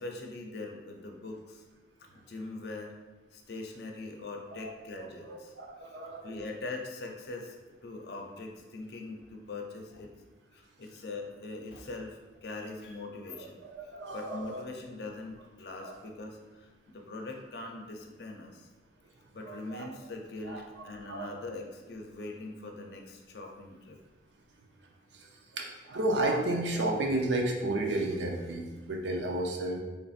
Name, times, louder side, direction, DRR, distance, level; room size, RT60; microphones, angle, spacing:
voice 1, 0.0-1.6 2.1-2.9 3.3-5.5 5.8-6.0 6.2-7.6 7.8-10.1 10.5-13.6 14.1-18.7 19.3-24.0, left 2 dB, 65° left, 2 dB, 0.5 m, -42 dB
voice 2, 4.6-6.4 13.4-14.6 15.8-16.0 19.4-19.9 20.5-20.6 21.1-21.4 25.1-29.8, right 2 dB, 85° right, 1 dB, 0.6 m, -33 dB
4.1 x 3.3 x 2.4 m, 1.2 s
head